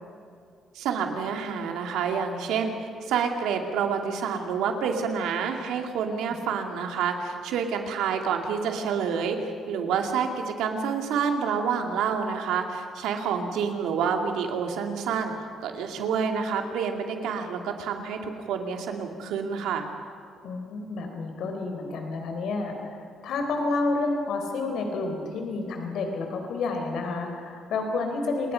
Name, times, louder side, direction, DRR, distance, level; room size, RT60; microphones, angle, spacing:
voice 1, 0.7-2.7 3.1-15.3 15.6-19.9, right 6 dB, 90° right, 4 dB, 2.5 m, -28 dB
voice 2, 20.4-23.0 23.2-28.5, left 3 dB, 75° left, 4 dB, 3.9 m, -29 dB
29.0 x 20.5 x 5.8 m, 2.4 s
cardioid pair, 90°, 0 cm